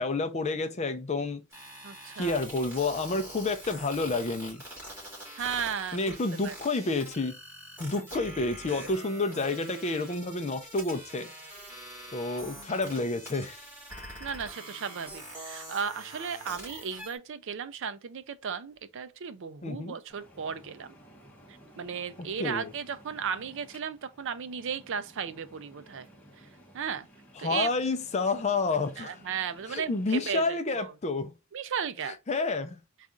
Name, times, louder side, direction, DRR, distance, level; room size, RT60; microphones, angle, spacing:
voice 1, 0.0-1.4 2.2-4.6 5.9-7.4 7.8-11.3 12.1-13.7 19.6-20.0 22.2-22.7 27.4-29.2 29.7-31.3 32.1-32.8, left 3 dB, 30° left, 0.5 m, -29 dB
sound 1, 1.5-17.2, right 1 dB, 10° right, 2.7 m, -44 dB
voice 2, 1.8-2.4 5.3-6.2 6.4-6.5 12.4-12.7 14.2-21.0 21.8-26.1 26.7-27.1 27.4-27.7 29.0-30.9 31.5-32.1, right 7 dB, 60° right, 0.4 m, -35 dB
sound 2, 20.1-30.4, equal, 5° left, 0.9 m, -55 dB
4.1 x 2.4 x 3.6 m
head